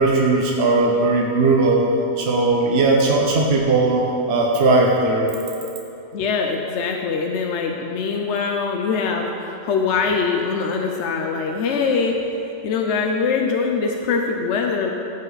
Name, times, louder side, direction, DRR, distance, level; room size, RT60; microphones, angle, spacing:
voice 1, 0.0-1.9 2.2-5.3, right 3 dB, 55° right, -1 dB, 1.2 m, -18 dB
voice 2, 6.1-12.2 12.6-14.9, left 5 dB, 65° left, 2 dB, 0.9 m, -23 dB
14.0 x 5.7 x 4.1 m, 2.7 s
omnidirectional pair, 1.4 m